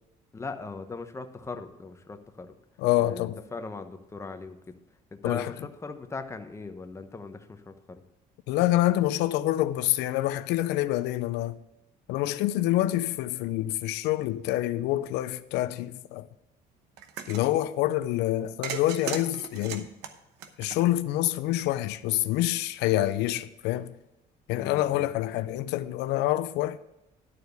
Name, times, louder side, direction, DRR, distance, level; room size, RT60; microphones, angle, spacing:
voice 1, 0.3-2.5 3.0-8.0 24.5-25.1, left 4 dB, 15° left, 0.9 m, -39 dB
voice 2, 2.8-3.4 5.2-5.5 8.5-11.6 12.1-16.3 17.3-19.9 20.6-23.9 24.5-26.8, left 14 dB, 90° left, 0.4 m, -27 dB
sound 1, 17.0-17.5 18.6-21.1, right 8 dB, 85° right, 0.9 m, -37 dB
11.0 x 4.7 x 6.6 m
cardioid pair, 110°, 17 cm